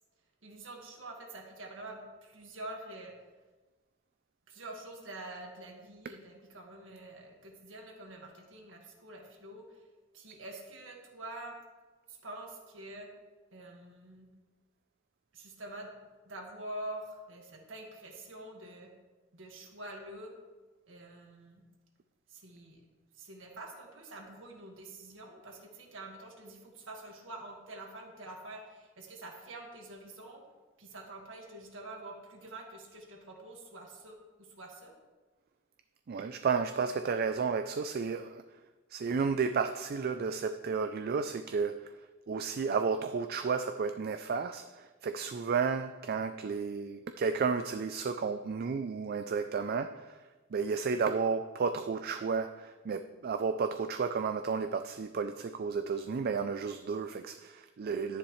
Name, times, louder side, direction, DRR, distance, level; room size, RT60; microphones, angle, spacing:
voice 1, 0.4-3.1 4.5-9.8 10.1-11.6 12.1-13.1 13.5-14.3 15.3-15.9 16.3-18.9 19.3-20.3 20.9-21.6 22.3-22.8 23.1-30.4 30.8-34.9, right 2 dB, 70° right, 1 dB, 1.8 m, -46 dB
voice 2, 36.1-38.4 38.9-41.9 42.3-50.2 50.5-58.2, right 5 dB, 50° right, 8 dB, 0.4 m, -32 dB
11.5 x 10.0 x 3.2 m, 1.3 s
head